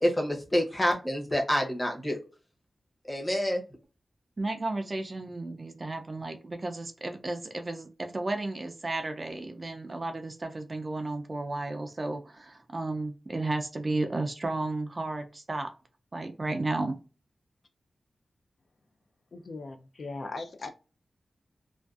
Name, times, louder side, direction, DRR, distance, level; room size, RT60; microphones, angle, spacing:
voice 1, 0.0-2.2 3.1-3.6, equal, 15° left, 0.7 m, -27 dB
voice 2, 4.4-15.7 16.1-17.0, right 2 dB, 35° right, 0.4 m, -33 dB
voice 3, 19.3-20.7, left 3 dB, 60° left, 0.3 m, -39 dB
2.5 x 2.3 x 2.3 m
wide cardioid pair, 110°, 0 cm